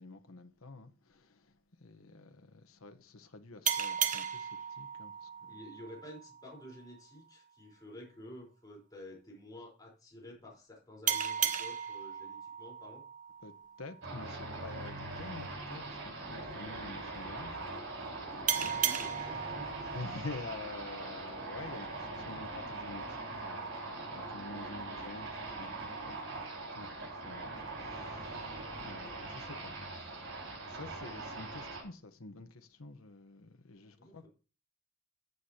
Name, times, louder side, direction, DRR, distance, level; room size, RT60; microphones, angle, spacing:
voice 1, 0.0-1.5 1.8-5.6 13.4-13.5 13.8-18.9 19.9-30.4 30.6-34.3, left 3 dB, 90° left, 1.1 m, -48 dB
sound 1, 3.7-6.9 11.1-14.3 18.5-21.4, right 8 dB, 40° right, 0.8 m, -36 dB
voice 2, 5.5-13.0 18.8-19.9 28.4-28.6 34.0-34.3, left 1 dB, 20° left, 4.2 m, -51 dB
sound 2, 14.0-31.8, right 2 dB, 65° right, 5.2 m, -42 dB
14.5 x 8.0 x 2.9 m
head